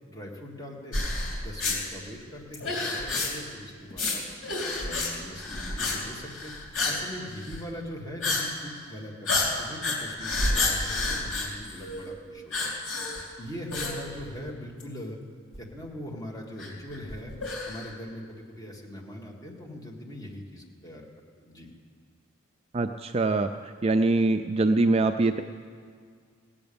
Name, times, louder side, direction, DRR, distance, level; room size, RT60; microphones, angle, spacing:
voice 1, 0.1-1.0 1.3-6.5 6.8-12.7 13.1-15.2 15.6-17.3 17.7-21.0 21.4-21.7, left 1 dB, 15° left, -2 dB, 1.8 m, -41 dB
sound 1, 0.9-1.8 2.5-3.5 3.9-4.2 4.4-5.1 5.4-6.0 6.2-7.0 7.3-7.6 8.2-8.4 8.8-8.9 9.3-12.1 12.5-13.3 13.7-14.5 14.8-14.9 15.5-15.6 16.6-17.9, left 3 dB, 85° left, 3.1 m, -29 dB
voice 2, 22.7-23.5 23.8-25.4, right 2 dB, 30° right, 7 dB, 0.3 m, -23 dB
17.0 x 8.7 x 6.9 m, 2.1 s
head